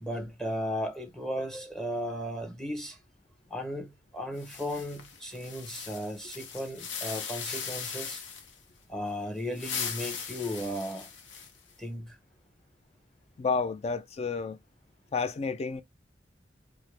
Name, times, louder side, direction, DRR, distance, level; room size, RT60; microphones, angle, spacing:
voice 1, 0.0-3.0 3.5-8.2 8.9-11.1 11.8-12.2, equal, 5° left, 0.7 m, -35 dB
sound 1, 4.4-8.6 9.4-11.7, left 6 dB, 80° left, 0.8 m, -39 dB
voice 2, 13.4-14.6 15.1-15.8, left 4 dB, 35° left, 0.3 m, -30 dB
4.5 x 2.1 x 3.2 m
head